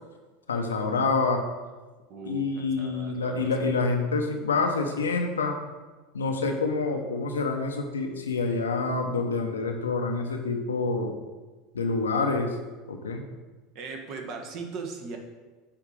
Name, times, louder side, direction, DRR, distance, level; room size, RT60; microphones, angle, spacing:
voice 1, 0.5-1.4 2.2-5.6 6.1-11.1 11.7-12.5 12.9-13.2, left 3 dB, 80° left, 3 dB, 0.7 m, -27 dB
voice 2, 2.1-3.5 13.7-15.2, right 4 dB, 50° right, 3 dB, 1.1 m, -39 dB
8.4 x 2.9 x 4.8 m, 1.3 s
figure-of-eight pair, 75°, 0 cm